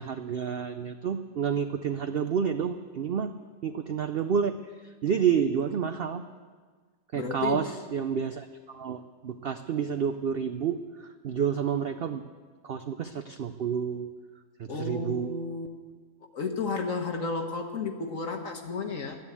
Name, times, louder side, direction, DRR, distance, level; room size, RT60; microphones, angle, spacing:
voice 1, 0.0-3.4 3.6-4.6 4.8-6.2 7.1-12.2 12.6-14.1 14.6-15.3, right 7 dB, 85° right, 8 dB, 0.5 m, -29 dB
voice 2, 7.1-7.6 14.7-15.7 16.3-19.2, left 4 dB, 60° left, 3 dB, 1.3 m, -32 dB
12.5 x 10.5 x 8.3 m, 1.5 s
omnidirectional pair, 1.7 m